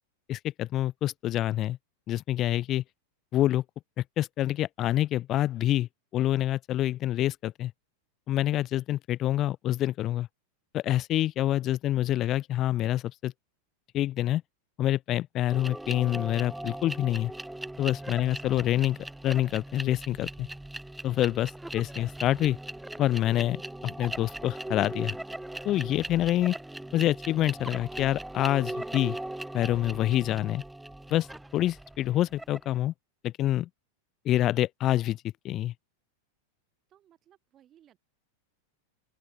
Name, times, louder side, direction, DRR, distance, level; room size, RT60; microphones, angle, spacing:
voice 1, 0.3-1.8 2.1-2.8 3.3-3.6 4.2-7.7 8.3-10.3 10.7-13.3 13.9-14.4 14.8-17.3 17.8-19.0 19.2-20.5 21.0-22.6 23.0-25.1 25.6-26.5 26.9-29.2 29.5-30.6 31.1-31.3 31.5-32.9 33.2-33.7 34.2-35.2 35.4-35.7, left 13 dB, 35° left, 0.8 m, -27 dB
sound 1, 15.5-32.7, right 1 dB, 5° right, 0.7 m, -39 dB
voice 2, 18.2-18.8 36.9-38.0, right 11 dB, 30° right, 7.5 m, -62 dB
open air
figure-of-eight pair, 90°, 0 cm